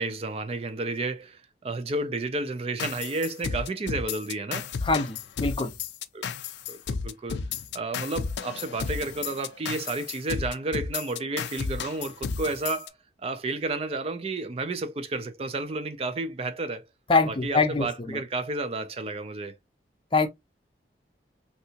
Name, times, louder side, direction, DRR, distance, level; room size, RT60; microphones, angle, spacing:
voice 1, 0.0-4.7 6.1-6.3 6.7-7.4 7.7-12.9 13.2-16.8 17.3-19.5, right 2 dB, 35° right, 0.4 m, -31 dB
sound 1, 2.8-12.9, left 5 dB, 75° left, 0.4 m, -33 dB
voice 2, 4.8-5.7 17.1-18.2 20.1-20.3, left 4 dB, 30° left, 0.6 m, -24 dB
3.2 x 2.7 x 2.8 m
head